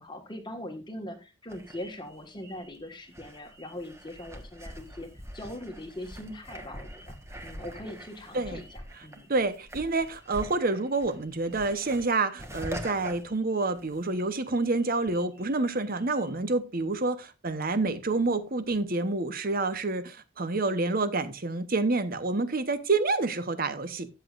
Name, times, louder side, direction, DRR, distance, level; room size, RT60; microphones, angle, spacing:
voice 1, 0.0-5.1 5.3-7.2 7.4-9.3, left 1 dB, 20° left, 1.4 m, -41 dB
sound 1, 1.5-14.2 14.5-16.3, equal, 15° right, 1.2 m, -45 dB
voice 2, 9.3-24.1, right 3 dB, 40° right, 0.8 m, -28 dB
13.5 x 7.9 x 2.4 m
head